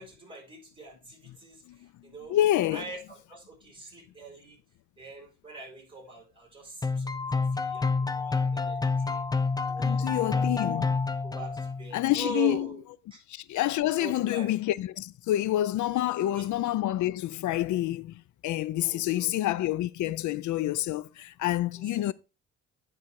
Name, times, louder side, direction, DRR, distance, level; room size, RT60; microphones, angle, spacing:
voice 1, 0.0-2.4 2.7-4.6 5.0-9.2 9.7-10.9 11.2-12.8 13.1-13.2 14.0-14.5 16.3-16.5 18.8-19.3 21.8-22.0, right 3 dB, 15° right, 5.3 m, -42 dB
voice 2, 2.3-2.8 9.8-11.0 11.9-12.7 13.3-22.1, left 14 dB, 75° left, 0.6 m, -28 dB
sound 1, 6.8-12.0, left 4 dB, 15° left, 0.7 m, -28 dB
9.8 x 4.1 x 4.7 m
cardioid pair, 90°, 30 cm